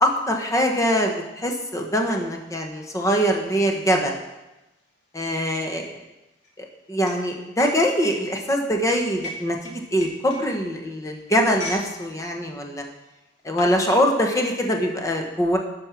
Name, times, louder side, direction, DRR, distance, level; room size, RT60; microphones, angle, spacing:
voice 1, 0.0-4.2 5.1-6.0 6.6-12.8 13.4-15.6, equal, 20° left, 2 dB, 1.2 m, -23 dB
sound 1, 2.4-11.9 12.2-12.5 13.1-13.8, left 1 dB, 75° left, 2.4 m, -40 dB
10.5 x 5.5 x 5.9 m, 1.0 s
head